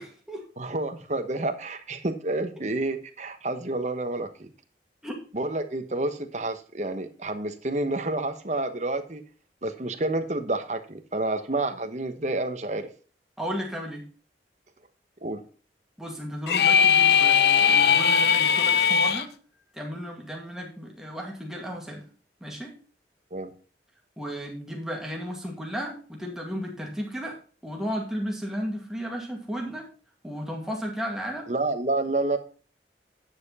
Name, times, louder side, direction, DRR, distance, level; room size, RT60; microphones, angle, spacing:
voice 1, 0.0-0.5 5.0-5.2 13.4-14.1 16.0-19.3 19.7-22.0 22.4-22.7 24.2-27.4 27.6-29.9 30.2-31.5, equal, 5° right, -1 dB, 2.2 m, -34 dB
voice 2, 0.6-4.5 5.3-9.2 9.6-12.9 15.2-15.4 23.3-23.5 31.5-32.4, right 2 dB, 40° right, 7 dB, 1.1 m, -29 dB
sound 1, 16.5-19.2, left 7 dB, 65° left, 0.7 m, -19 dB
9.6 x 6.8 x 4.1 m, 0.39 s
head